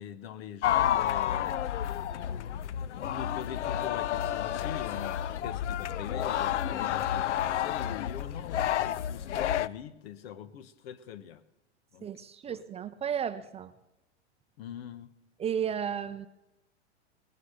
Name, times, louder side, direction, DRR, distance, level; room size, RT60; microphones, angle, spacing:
voice 1, 0.0-1.6 2.3-11.4 11.9-12.1 12.5-12.6 14.6-15.1, left 9 dB, 60° left, 1.3 m, -43 dB
sound 1, 0.6-9.7, left 11 dB, 80° left, 0.6 m, -30 dB
voice 2, 12.0-13.7 15.4-16.3, right 8 dB, 20° right, 0.6 m, -33 dB
19.5 x 9.9 x 6.7 m
hypercardioid pair, 110°, 35 cm